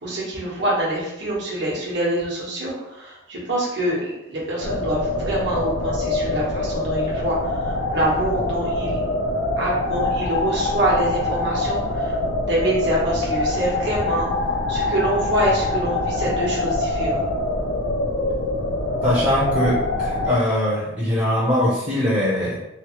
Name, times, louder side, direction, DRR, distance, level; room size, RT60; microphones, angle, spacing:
voice 1, 0.0-9.0 9.6-12.2 12.5-14.3 14.7-17.2, right 1 dB, 70° right, -5 dB, 1.1 m, -25 dB
sound 1, 4.6-20.4, left 2 dB, 75° left, 0.4 m, -24 dB
voice 2, 19.0-22.6, equal, 25° right, -7 dB, 0.6 m, -21 dB
3.1 x 2.0 x 2.9 m, 0.91 s
head